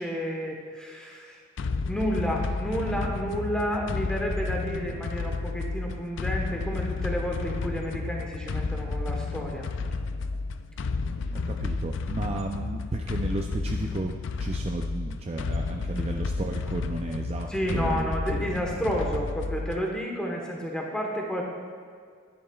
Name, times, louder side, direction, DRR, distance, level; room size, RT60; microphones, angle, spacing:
voice 1, 0.0-1.4 1.9-9.7 17.5-21.4, equal, 5° left, -1 dB, 1.1 m, -31 dB
sound 1, 1.6-20.0, left 4 dB, 65° left, 0.4 m, -31 dB
voice 2, 11.3-18.1, right 2 dB, 30° right, 2 dB, 0.4 m, -33 dB
10.5 x 10.5 x 2.3 m, 2.1 s
head